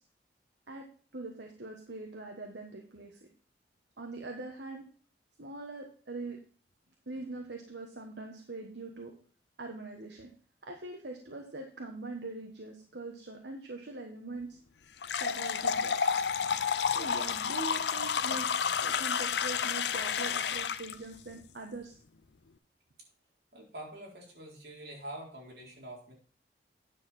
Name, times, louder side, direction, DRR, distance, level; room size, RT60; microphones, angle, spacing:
voice 1, 1.1-3.2 4.0-4.8 5.4-6.4 7.1-9.1 9.6-10.3 10.6-14.6 15.2-16.0 16.9-22.0, right 3 dB, 75° right, 2 dB, 1.3 m, -42 dB
sound 1, 15.0-20.9, left 6 dB, 75° left, 0.6 m, -30 dB
voice 2, 23.5-26.1, right 1 dB, 60° right, -2 dB, 4.0 m, -45 dB
9.7 x 6.6 x 4.3 m, 0.43 s
head